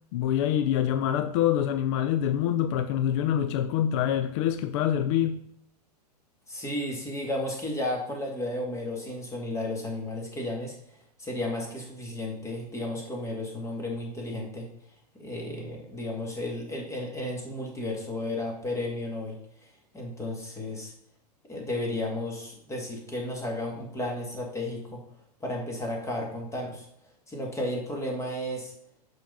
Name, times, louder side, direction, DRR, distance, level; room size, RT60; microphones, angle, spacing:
voice 1, 0.1-5.4, left 10 dB, 45° left, 0.5 m, -25 dB
voice 2, 6.5-10.8 11.2-14.7 15.2-20.9 21.5-25.0 25.4-26.9 27.3-28.7, left 1 dB, 15° left, 2.0 m, -33 dB
5.6 x 5.3 x 5.5 m
figure-of-eight pair, 100°, 21 cm